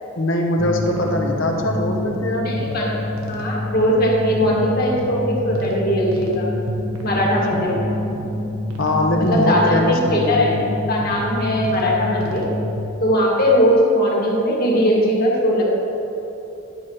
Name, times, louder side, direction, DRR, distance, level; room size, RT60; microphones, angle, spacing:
voice 1, 0.1-2.6 7.5-7.7 8.8-10.4, left 1 dB, 65° left, 2 dB, 1.1 m, -21 dB
sound 1, 0.6-12.8, left 1 dB, 85° right, 1.3 m, -27 dB
voice 2, 2.3-3.0 3.3-6.5 7.0-7.9 9.1-10.6 10.9-12.4 13.0-15.7, equal, 45° left, -3 dB, 1.9 m, -19 dB
11.0 x 6.2 x 4.7 m, 3.0 s
head